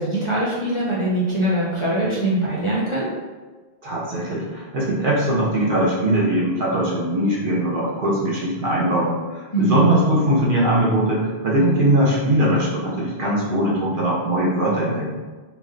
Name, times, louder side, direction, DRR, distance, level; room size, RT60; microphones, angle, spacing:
voice 1, 0.0-3.1 9.5-9.8, right 1 dB, 40° left, -7 dB, 0.5 m, -22 dB
voice 2, 3.8-15.1, right 1 dB, 60° right, -5 dB, 0.9 m, -20 dB
2.5 x 2.2 x 3.7 m, 1.3 s
omnidirectional pair, 1.0 m